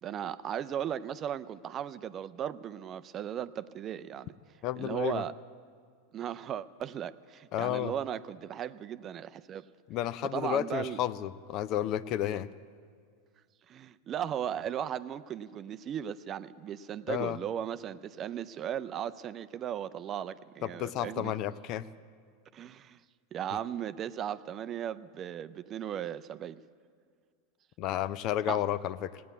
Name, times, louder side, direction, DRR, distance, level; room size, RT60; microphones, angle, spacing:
voice 1, 0.0-4.3 4.8-5.3 6.1-9.6 10.3-11.0 13.7-21.3 22.5-23.0 23.3-26.6 28.5-28.6, right 9 dB, 35° right, 13 dB, 0.4 m, -36 dB
voice 2, 4.6-5.2 7.5-7.9 9.9-12.5 17.1-17.4 20.6-21.9 27.8-29.2, left 12 dB, 45° left, 16 dB, 0.4 m, -32 dB
17.0 x 9.4 x 8.1 m, 2.1 s
figure-of-eight pair, 90°, 0 cm